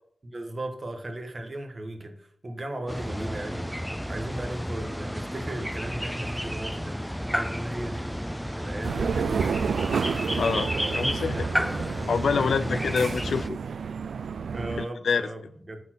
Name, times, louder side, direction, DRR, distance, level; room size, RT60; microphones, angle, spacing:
voice 1, 0.2-9.6 10.7-12.0 12.4-12.9 14.2-15.8, right 1 dB, 30° right, 1.4 m, -37 dB
sound 1, 2.9-13.5, equal, ahead, 0.3 m, -32 dB
sound 2, 8.8-14.9, right 6 dB, 85° right, 0.3 m, -30 dB
voice 2, 10.4-11.5 12.1-13.6 14.8-15.3, left 5 dB, 85° left, 0.5 m, -26 dB
9.0 x 4.3 x 6.1 m
wide cardioid pair, 150°, 0 cm